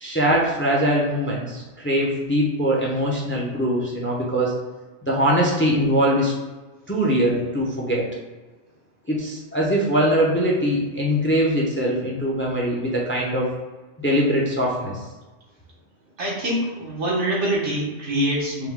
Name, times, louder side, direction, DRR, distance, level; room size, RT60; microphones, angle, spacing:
voice 1, 0.0-4.6 5.0-6.3 6.9-8.1 9.1-13.5 14.0-15.1, equal, 15° left, -3 dB, 0.5 m, -22 dB
voice 2, 16.2-18.7, right 1 dB, 85° right, -5 dB, 1.5 m, -24 dB
4.8 x 2.2 x 3.5 m, 1.2 s
omnidirectional pair, 1.2 m